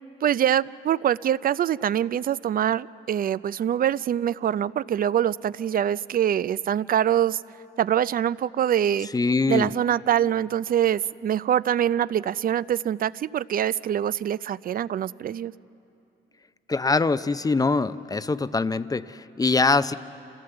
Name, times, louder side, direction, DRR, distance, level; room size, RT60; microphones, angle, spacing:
voice 1, 0.2-7.4 7.8-9.1 9.5-15.5, right 10 dB, 45° right, 18 dB, 0.4 m, -24 dB
voice 2, 9.1-9.7 16.7-19.9, left 3 dB, 20° left, 14 dB, 0.5 m, -23 dB
28.0 x 16.0 x 7.9 m, 2.8 s
cardioid pair, 90°, 20 cm